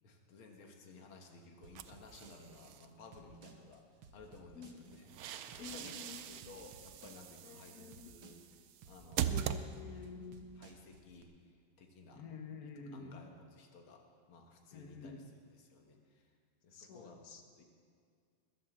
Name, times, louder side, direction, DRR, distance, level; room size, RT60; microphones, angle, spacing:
voice 1, 0.0-3.8 4.1-5.9 6.3-8.4 8.9-9.3 10.6-11.3 11.8-12.2 12.9-14.0 14.3-15.1 15.7-16.2 16.6-17.3 17.6-17.7, left 3 dB, 80° left, 2 dB, 2.3 m, -56 dB
sound 1, 1.6-11.2, right 5 dB, 65° right, 1.8 m, -59 dB
sound 2, 1.7-2.9 4.8-10.2, right 9 dB, 90° right, 0.8 m, -42 dB
voice 2, 5.6-6.3 7.4-8.2 9.3-10.7 12.1-13.3 14.7-15.3 16.7-17.4, left 5 dB, 50° left, 5 dB, 1.6 m, -50 dB
21.0 x 7.5 x 7.3 m, 2.2 s
omnidirectional pair, 2.3 m